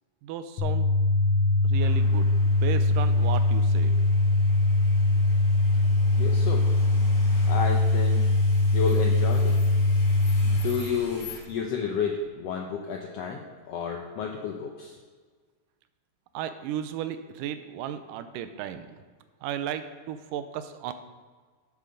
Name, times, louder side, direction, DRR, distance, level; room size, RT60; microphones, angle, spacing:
voice 1, 0.2-0.9 1.6-2.3 2.6-3.9 16.3-19.0 19.4-20.9, right 10 dB, 85° right, 10 dB, 2.3 m, -34 dB
sound 1, 0.6-10.6, left 2 dB, 65° left, 1.6 m, -22 dB
sound 2, 1.8-11.4, left 2 dB, 45° left, 3.4 m, -45 dB
voice 2, 5.8-6.7 7.5-8.3 8.7-9.6 10.4-15.0, left 6 dB, 80° left, 1 dB, 1.4 m, -31 dB
11.0 x 7.7 x 3.9 m, 1.5 s
omnidirectional pair, 3.7 m